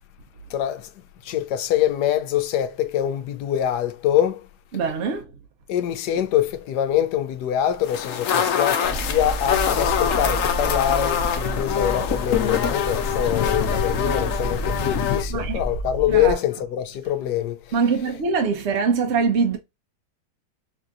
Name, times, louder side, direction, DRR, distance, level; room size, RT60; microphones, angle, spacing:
voice 1, 0.5-0.9 1.2-4.5 5.7-17.8, left 11 dB, 80° left, 1.2 m, -24 dB
voice 2, 4.7-5.3 15.3-15.6 16.1-16.4 17.7-19.6, right 5 dB, 60° right, 0.7 m, -23 dB
sound 1, 7.8-15.2, left 8 dB, 65° left, 0.9 m, -24 dB
sound 2, 8.8-16.3, right 1 dB, 75° right, 1.3 m, -30 dB
4.9 x 2.7 x 2.3 m
omnidirectional pair, 1.8 m